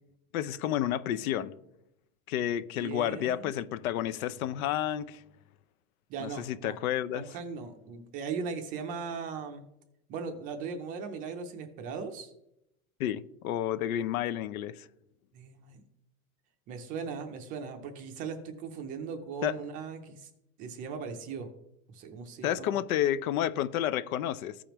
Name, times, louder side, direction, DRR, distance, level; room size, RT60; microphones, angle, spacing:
voice 1, 0.3-1.5 2.3-5.2 6.2-7.3 13.0-14.9 19.4-19.6 22.4-24.6, left 11 dB, 85° left, 0.7 m, -30 dB
voice 2, 2.8-3.5 6.1-6.8 7.1-9.6 10.1-12.3 15.3-15.8 16.7-20.3 20.6-21.5 21.9-22.8, right 5 dB, 20° right, 0.5 m, -38 dB
15.0 x 5.1 x 3.0 m
supercardioid pair, 170°, 41 cm